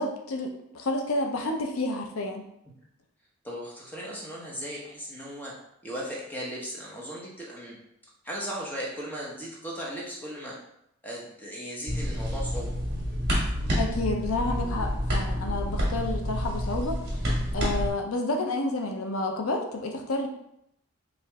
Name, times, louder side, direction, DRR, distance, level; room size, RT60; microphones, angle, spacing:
voice 1, 0.0-2.5 13.7-17.2 17.5-20.3, left 2 dB, 75° left, 2 dB, 0.5 m, -30 dB
voice 2, 3.4-5.5 5.8-7.8 8.2-10.5 11.0-12.7, equal, 10° left, -4 dB, 0.8 m, -37 dB
sound 1, 11.9-17.9, equal, 45° right, 1.5 m, -28 dB
4.6 x 2.5 x 3.4 m, 0.77 s
head